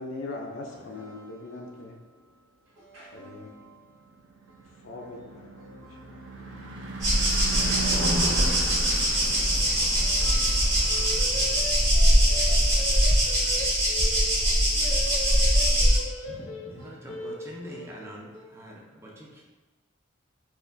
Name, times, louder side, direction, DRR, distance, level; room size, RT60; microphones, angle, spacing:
voice 1, 0.0-2.0 3.1-3.7 4.8-5.7 10.9-18.1, left 2 dB, 70° left, 0.4 m, -39 dB
voice 2, 0.6-1.9 2.7-11.8 15.5-16.5 16.8-17.1 17.6-18.6, equal, 80° right, 1.1 m, -48 dB
Car passing by / Truck / Engine, 3.9-14.1, right 2 dB, 60° right, 0.5 m, -37 dB
sound 1, 7.0-16.0, equal, 35° right, 1.5 m, -22 dB
voice 3, 16.3-19.4, equal, 15° right, 0.5 m, -44 dB
4.1 x 2.4 x 2.5 m
head